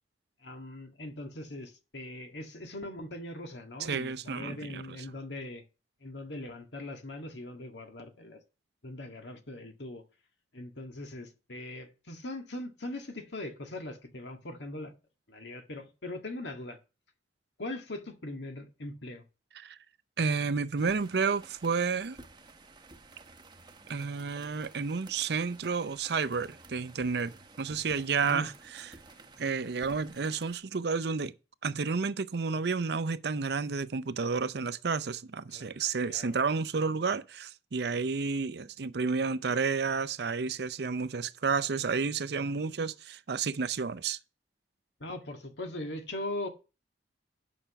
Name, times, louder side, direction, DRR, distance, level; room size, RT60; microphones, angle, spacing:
voice 1, 0.4-5.6 6.0-8.4 8.8-10.0 10.5-14.9 15.3-16.8 17.6-19.2 28.2-28.5 35.5-36.4 45.0-46.5, left 1 dB, 80° left, 1.8 m, -40 dB
voice 2, 3.9-4.8 19.6-19.8 20.2-22.2 23.9-28.8 29.4-31.3 31.6-44.2, right 5 dB, 65° right, 0.6 m, -31 dB
sound 1, 20.8-30.6, right 2 dB, 25° right, 0.9 m, -53 dB
9.1 x 6.1 x 5.7 m
head